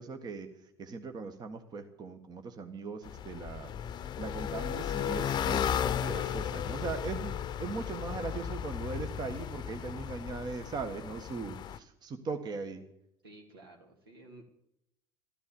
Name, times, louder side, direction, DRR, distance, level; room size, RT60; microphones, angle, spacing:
voice 1, 0.0-7.3 7.6-12.8, right 4 dB, 35° right, 7 dB, 1.5 m, -39 dB
sound 1, 3.0-11.8, left 9 dB, 35° left, 0.8 m, -35 dB
voice 2, 13.2-14.4, right 2 dB, 80° right, 1 dB, 3.0 m, -53 dB
13.5 x 13.5 x 7.0 m, 0.78 s
figure-of-eight pair, 65°, 12 cm